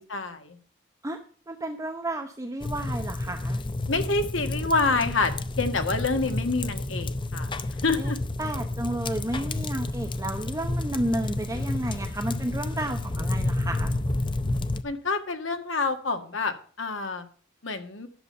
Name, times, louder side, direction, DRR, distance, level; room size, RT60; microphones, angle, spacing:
voice 1, 0.1-0.6 3.9-5.3 5.6-7.5 7.8-8.2 14.8-17.2 17.6-18.1, left 3 dB, 70° left, 7 dB, 1.6 m, -27 dB
voice 2, 1.5-3.6 8.0-8.1 8.4-13.9, right 1 dB, 15° right, 5 dB, 0.8 m, -32 dB
sound 1, 2.6-14.8, left 2 dB, 25° left, 0.6 m, -30 dB
11.0 x 7.1 x 6.8 m, 0.42 s
head